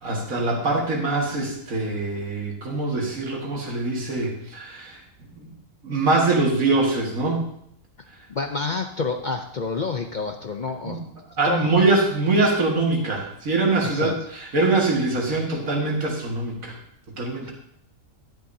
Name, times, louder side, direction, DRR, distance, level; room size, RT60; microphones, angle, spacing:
voice 1, 0.0-5.0 5.4-5.5 5.8-7.4 10.8-11.0 11.4-16.8 17.2-17.5, right 3 dB, 85° right, -1 dB, 2.3 m, -23 dB
voice 2, 8.3-11.0 11.4-11.8 13.8-14.2 17.4-17.5, left 4 dB, 50° left, 5 dB, 0.5 m, -29 dB
11.5 x 10.0 x 2.7 m, 0.70 s
omnidirectional pair, 1.4 m